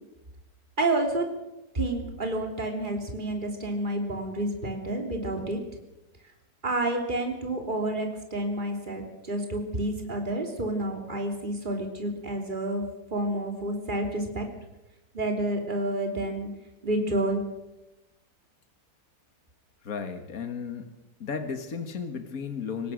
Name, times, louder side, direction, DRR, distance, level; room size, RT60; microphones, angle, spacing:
voice 1, 0.8-1.2 1.7-5.6 6.6-12.8 13.1-14.5 15.1-16.5 16.8-17.4, right 1 dB, 30° right, 2 dB, 3.4 m, -29 dB
voice 2, 19.8-20.9 21.2-22.9, left 6 dB, 60° left, 7 dB, 2.1 m, -34 dB
24.0 x 18.5 x 6.4 m, 0.97 s
omnidirectional pair, 1.7 m